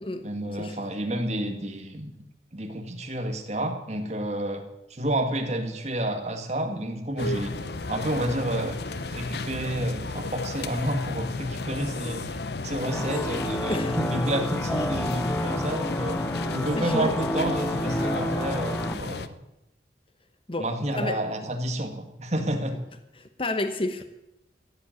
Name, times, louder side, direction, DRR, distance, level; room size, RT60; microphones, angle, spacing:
voice 1, 0.2-2.1 2.5-4.6 4.9-7.5 7.9-8.8 9.1-12.3 12.6-16.2 16.5-19.4 20.6-22.8, right 1 dB, 40° right, 4 dB, 2.0 m, -30 dB
sound 1, 7.2-19.3, left 3 dB, 65° left, 0.8 m, -33 dB
sound 2, 12.8-18.9, left 1 dB, 10° left, 0.6 m, -30 dB
voice 2, 16.8-17.1 20.5-21.2 23.2-24.0, left 1 dB, 30° left, 8 dB, 1.1 m, -30 dB
15.5 x 8.0 x 9.4 m, 0.89 s
head